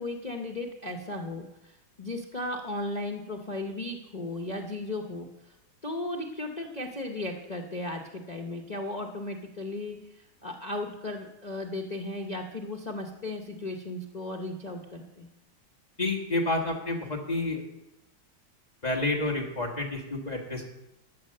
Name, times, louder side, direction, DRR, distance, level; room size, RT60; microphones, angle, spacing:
voice 1, 0.0-5.3 5.8-15.3, left 2 dB, 85° left, 2 dB, 0.3 m, -36 dB
voice 2, 16.0-17.6 18.8-20.7, left 2 dB, 25° left, 1 dB, 1.4 m, -29 dB
12.5 x 6.6 x 6.6 m, 0.91 s
omnidirectional pair, 2.2 m